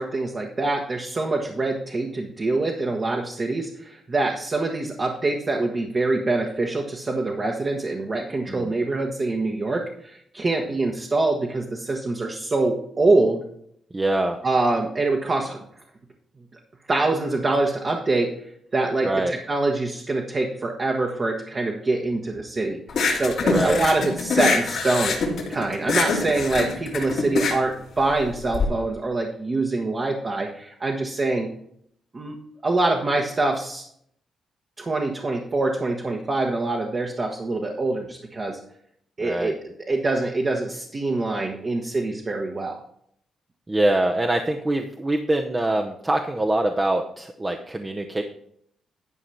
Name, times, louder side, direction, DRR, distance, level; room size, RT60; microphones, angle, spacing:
voice 1, 0.0-13.4 14.4-15.6 16.9-18.3 18.7-22.8 23.1-31.5 32.1-32.4 32.6-33.8 34.8-38.6 39.2-39.6 39.9-42.8, right 2 dB, 35° right, 1 dB, 1.3 m, -25 dB
voice 2, 13.9-14.4 19.0-19.3 23.5-23.8 39.2-39.5 43.7-48.2, right 1 dB, 20° right, 2 dB, 0.9 m, -24 dB
sound 1, 22.9-28.6, left 4 dB, 70° left, 2.2 m, -24 dB
11.0 x 4.9 x 5.8 m, 0.68 s
cardioid pair, 80°, 0 cm